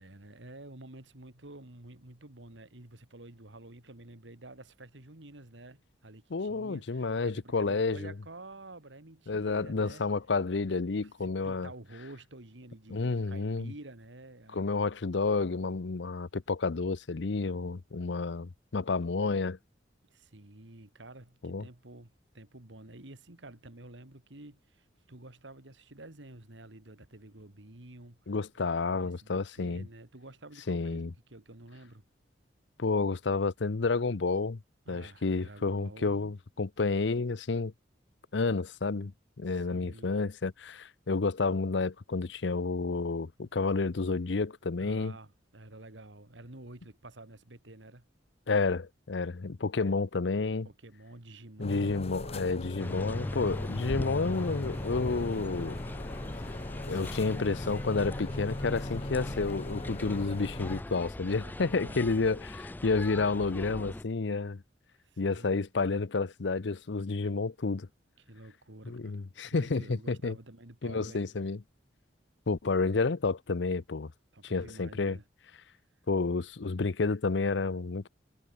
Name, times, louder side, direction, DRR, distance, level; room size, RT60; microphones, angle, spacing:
voice 1, 0.0-10.0 11.0-14.7 20.0-28.4 28.9-32.0 34.8-36.3 39.4-40.2 43.6-43.7 44.8-48.1 50.6-52.1 61.4-62.1 65.0-65.6 68.2-69.2 69.6-71.4 74.3-75.2, right 2 dB, 80° right, 2.6 m, -50 dB
voice 2, 6.3-8.1 9.3-11.7 12.9-13.7 14.5-19.6 21.4-21.6 28.3-29.9 30.7-31.1 32.8-34.6 34.9-37.7 38.3-39.1 39.4-45.1 48.5-50.7 51.6-55.8 56.9-64.6 65.2-67.9 68.9-70.4 70.8-71.6 72.5-74.1 74.4-75.2 76.1-78.1, left 3 dB, 70° left, 0.7 m, -30 dB
sound 1, 51.6-60.8, left 1 dB, 35° left, 1.5 m, -40 dB
sound 2, 52.8-64.0, left 1 dB, 10° left, 0.3 m, -39 dB
head